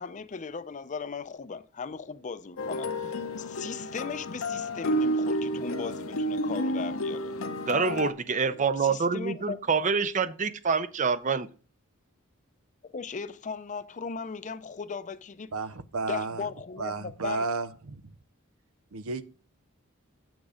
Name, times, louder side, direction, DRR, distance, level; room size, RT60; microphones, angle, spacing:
voice 1, 0.0-7.3 8.6-9.6 12.8-15.7 16.1-17.5, left 5 dB, 35° left, 0.5 m, -38 dB
sound 1, 2.6-8.1, equal, 70° left, 0.8 m, -30 dB
voice 2, 7.7-11.5, right 5 dB, 35° right, 0.6 m, -26 dB
voice 3, 15.5-16.4 16.8-18.0 18.9-19.2, right 3 dB, 85° right, 0.7 m, -32 dB
8.2 x 6.2 x 5.0 m
head